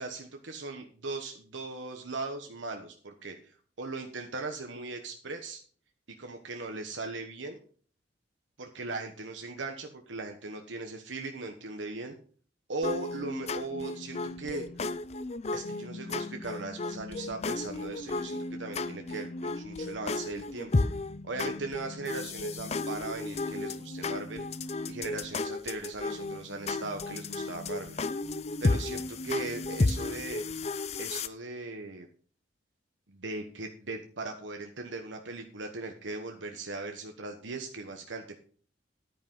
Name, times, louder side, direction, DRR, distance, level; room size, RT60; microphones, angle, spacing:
voice 1, 0.0-5.6 6.2-7.6 8.6-12.2 12.7-14.6 15.5-20.7 21.2-24.4 24.9-28.0 28.6-30.4 31.0-32.1 33.1-38.4, right 3 dB, 90° right, 4 dB, 1.2 m, -39 dB
sound 1, 12.8-31.3, left 3 dB, 35° left, 0.5 m, -33 dB
10.5 x 9.6 x 3.9 m, 0.44 s
head